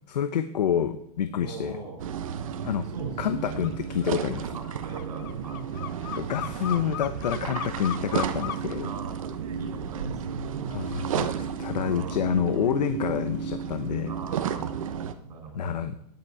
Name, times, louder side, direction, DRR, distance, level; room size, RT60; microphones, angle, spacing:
voice 1, 0.1-1.8 2.6-2.8 3.2-4.6 6.2-8.9 10.7-11.3 11.6-14.1 15.5-16.0, left 9 dB, 80° left, 9 dB, 1.0 m, -28 dB
voice 2, 1.4-2.0 2.9-3.7 4.5-5.7 8.8-11.1 11.7-12.2 14.1-14.7 15.2-15.9, right 4 dB, 70° right, 1 dB, 6.4 m, -40 dB
sound 1, 2.0-15.1, right 8 dB, 55° right, 1.1 m, -33 dB
sound 2, 3.6-3.8 4.0-8.7, left 11 dB, 35° left, 0.5 m, -36 dB
13.0 x 11.0 x 4.9 m, 0.73 s
hypercardioid pair, 175°, 21 cm